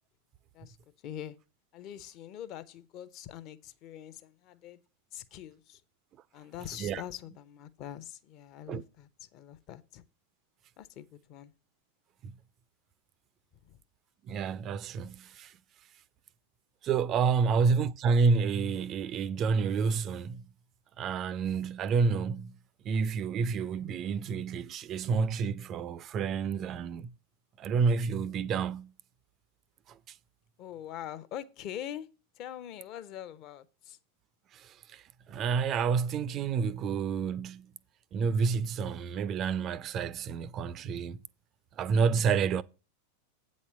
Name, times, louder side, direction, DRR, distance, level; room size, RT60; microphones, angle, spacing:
voice 1, 1.0-1.3 1.7-4.8 5.1-5.8 6.3-10.0 10.8-11.5 13.7-13.8 17.4-17.7 30.6-32.1 32.4-34.0, left 11 dB, 40° left, 0.7 m, -43 dB
voice 2, 14.3-15.5 16.8-20.5 21.0-22.6 22.8-27.1 27.6-28.9 29.9-30.2 34.5-37.7 38.1-41.2 41.8-42.6, right 5 dB, 30° right, 0.4 m, -29 dB
8.3 x 4.3 x 7.2 m
figure-of-eight pair, 90°, 0 cm